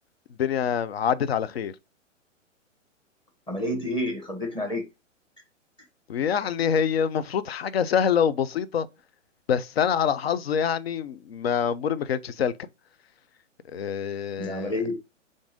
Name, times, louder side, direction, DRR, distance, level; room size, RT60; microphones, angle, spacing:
voice 1, 0.4-1.7 6.1-8.9 9.5-12.5 13.7-14.7, left 8 dB, 55° left, 0.6 m, -25 dB
voice 2, 3.5-4.8 14.4-14.9, left 1 dB, 10° left, 1.7 m, -29 dB
7.0 x 2.7 x 5.2 m
figure-of-eight pair, 120°, 38 cm